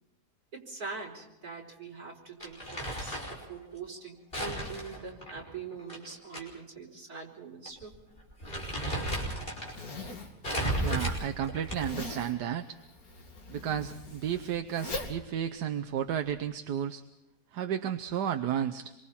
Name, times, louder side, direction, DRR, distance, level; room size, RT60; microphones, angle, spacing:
voice 1, 0.5-7.9, right 5 dB, 65° right, -1 dB, 5.1 m, -43 dB
Crumpling crinkling, 2.4-3.4 4.3-6.4 6.8-6.9 7.7-7.8 8.2-9.7 10.4-12.0, right 1 dB, 35° left, 5.8 m, -34 dB
Zipper (clothing), 8.9-16.4, left 2 dB, 60° left, 3.0 m, -43 dB
voice 2, 10.8-12.8 13.5-17.0 17.5-18.9, right 9 dB, 85° right, 8 dB, 1.5 m, -32 dB
27.0 x 24.0 x 4.3 m, 0.96 s
omnidirectional pair, 1.7 m